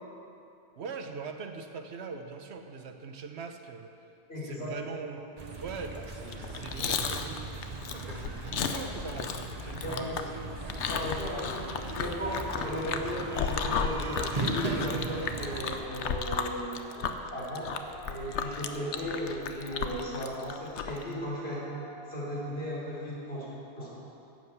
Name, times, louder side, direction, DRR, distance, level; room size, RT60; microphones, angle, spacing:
voice 1, 0.8-3.9 4.4-5.3 5.6-7.7 8.1-10.6, right 5 dB, 75° right, 6 dB, 1.1 m, -41 dB
voice 2, 4.3-5.0 9.8-10.3 10.9-17.7 18.1-21.6 22.1-24.0, equal, 65° left, -7 dB, 3.7 m, -36 dB
sound 1, 5.4-15.8, right 3 dB, 40° right, 1.0 m, -38 dB
Chewing mastication, 6.2-21.0, left 6 dB, 90° left, 1.0 m, -34 dB
sound 2, 14.4-22.5, right 2 dB, 55° right, 1.6 m, -50 dB
11.0 x 7.8 x 7.9 m, 2.7 s
omnidirectional pair, 1.1 m